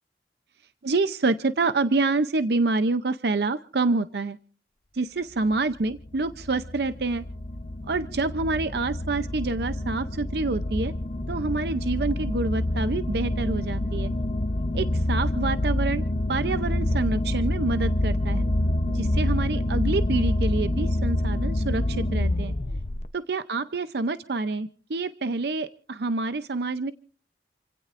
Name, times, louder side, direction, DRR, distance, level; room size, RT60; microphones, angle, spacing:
voice 1, 0.8-4.4 4.9-7.2 7.9-10.9 11.3-14.1 14.7-16.0 16.3-18.5 18.9-22.5 23.1-26.9, right 3 dB, 65° right, 11 dB, 0.6 m, -27 dB
sound 1, 5.5-23.1, left 1 dB, 40° left, 0.8 m, -27 dB
29.0 x 16.0 x 2.5 m, 0.40 s
head